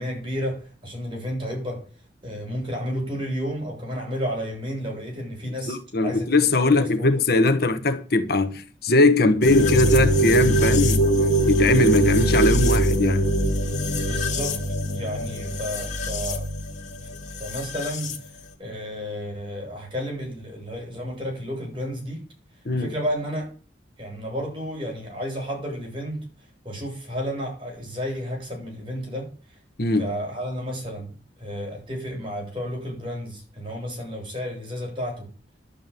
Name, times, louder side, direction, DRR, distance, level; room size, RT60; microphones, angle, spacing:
voice 1, 0.0-1.8 2.2-5.8 6.0-7.1 13.9-14.6 14.9-16.5 17.4-18.1 18.6-22.2 22.8-23.5 24.0-26.2 26.6-29.3 30.0-35.3, equal, 30° right, 7.8 m, -32 dB
voice 2, 5.7-11.1 11.5-13.3 22.6-22.9 29.8-30.1, left 2 dB, 60° left, 1.2 m, -20 dB
sound 1, 9.4-18.2, right 1 dB, 40° left, 2.4 m, -22 dB
11.5 x 7.2 x 9.1 m
head